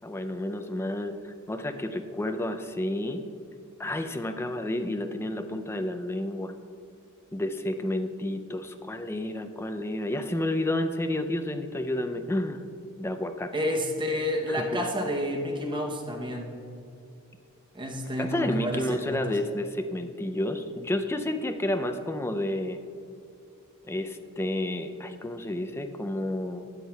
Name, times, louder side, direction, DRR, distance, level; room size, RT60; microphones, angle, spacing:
voice 1, 0.0-3.3 3.8-6.5 7.3-12.6 13.0-13.5 14.5-14.8 18.2-22.8 23.9-26.6, left 1 dB, 10° left, 6 dB, 0.4 m, -30 dB
voice 2, 13.5-16.5 17.7-19.2, equal, 20° right, 1 dB, 0.8 m, -30 dB
12.5 x 8.3 x 2.3 m, 2.5 s
head